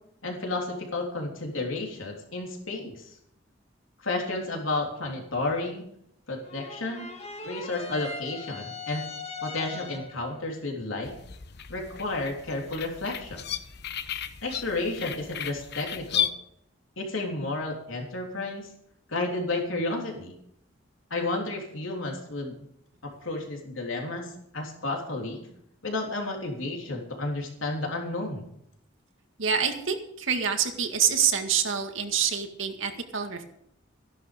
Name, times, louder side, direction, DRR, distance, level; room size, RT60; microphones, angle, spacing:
voice 1, 0.2-3.1 4.0-5.8 6.3-7.1 7.4-9.0 9.4-11.2 11.7-13.5 14.4-16.3 17.0-18.7 19.1-20.3 21.1-22.5 23.0-25.4 25.8-28.5, left 2 dB, 85° left, 1 dB, 3.5 m, -32 dB
sound 1, 6.4-10.3, left 4 dB, 35° left, 1.8 m, -39 dB
sound 2, 11.0-16.3, left 9 dB, 55° left, 1.0 m, -34 dB
voice 2, 29.4-33.4, right 7 dB, 80° right, 5 dB, 2.0 m, -26 dB
15.0 x 11.5 x 5.3 m, 0.72 s
head